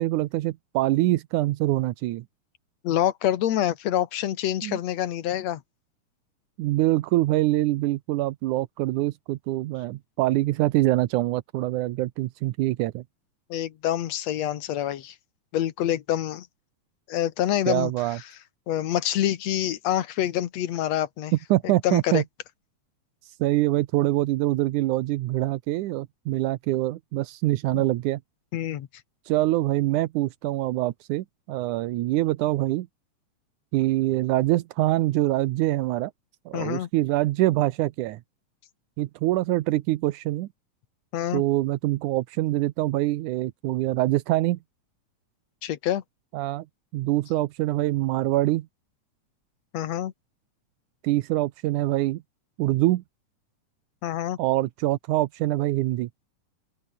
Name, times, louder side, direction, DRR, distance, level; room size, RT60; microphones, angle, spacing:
voice 1, 0.0-2.2 4.6-4.8 6.6-13.0 17.7-18.2 21.5-22.2 23.2-28.2 29.3-32.9 33.7-36.1 36.5-38.2 39.0-40.5 41.3-44.6 46.3-46.7 46.9-48.7 51.0-52.2 52.6-53.0 54.4-56.1, right 17 dB, 85° right, 2.2 m, -24 dB
voice 2, 2.8-5.6 13.5-15.2 15.5-16.5 17.1-17.9 18.7-21.3 21.6-22.2 27.7-27.8 28.5-28.9 36.5-36.9 41.1-41.4 45.6-46.0 49.7-50.1 54.0-54.4, left 11 dB, 65° left, 2.3 m, -26 dB
open air
omnidirectional pair, 3.6 m